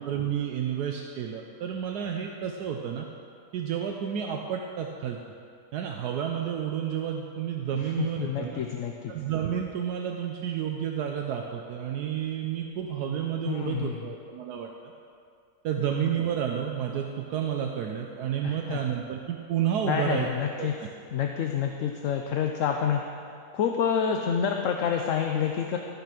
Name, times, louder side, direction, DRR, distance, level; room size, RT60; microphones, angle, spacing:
voice 1, 0.0-3.1 3.5-5.2 5.7-8.6 9.1-14.7 15.6-20.3 20.6-20.9, right 9 dB, 75° right, 2 dB, 1.2 m, -30 dB
voice 2, 7.7-9.1 13.4-14.0 18.4-18.8 19.8-20.7 21.1-23.0 23.5-25.8, left 7 dB, 65° left, 3 dB, 0.9 m, -28 dB
13.5 x 6.0 x 5.9 m, 2.3 s
omnidirectional pair, 1.7 m